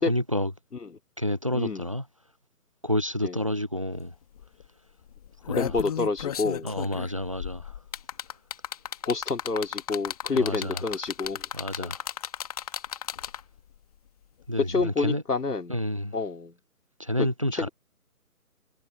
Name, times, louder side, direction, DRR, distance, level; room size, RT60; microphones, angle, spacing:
voice 1, 0.1-0.5 1.2-2.1 2.8-4.1 5.5-5.8 6.6-7.8 10.3-10.8 11.5-12.0 14.5-15.2 15.7-16.1 17.0-17.7, left 1 dB, 20° right, 0.6 m, -29 dB
voice 2, 1.5-1.9 3.2-3.4 5.6-6.7 9.0-11.5 11.8-11.9 14.7-15.8 16.1-16.5 17.2-17.7, left 4 dB, 75° left, 3.0 m, -28 dB
sound 1, 4.0-4.1 4.4-4.6 5.2-13.6 14.8-14.9, left 9 dB, 25° left, 2.0 m, -34 dB
figure-of-eight pair, 160°, 46 cm